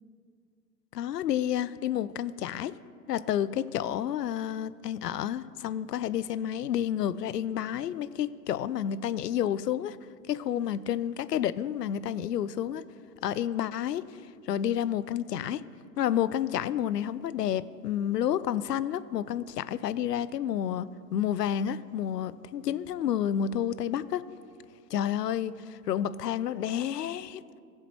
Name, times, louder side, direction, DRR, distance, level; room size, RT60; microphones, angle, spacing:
voice 1, 0.9-2.7 3.1-10.0 10.3-12.8 13.2-14.0 14.5-15.6 16.0-24.2 24.9-27.4, left 10 dB, 75° left, 17 dB, 0.6 m, -30 dB
17.5 x 7.6 x 3.1 m, 2.3 s
hypercardioid pair, 120°, 48 cm